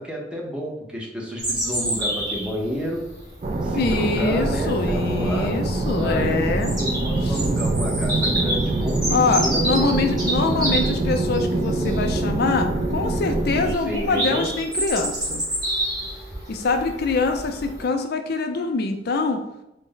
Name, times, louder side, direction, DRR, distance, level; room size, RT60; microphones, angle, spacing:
voice 1, 0.0-3.1 3.6-5.6 6.0-10.9 13.7-14.5, equal, 5° right, -3 dB, 0.7 m, -31 dB
Bird vocalization bird call bird song, 1.4-17.8, right 1 dB, 20° right, 1.2 m, -30 dB
sound 1, 3.4-13.7, right 2 dB, 40° right, 0.3 m, -24 dB
voice 2, 3.7-6.7 7.2-7.4 9.1-15.4 16.5-19.4, left 3 dB, 60° left, 5 dB, 0.4 m, -24 dB
4.0 x 2.0 x 3.8 m, 0.89 s
head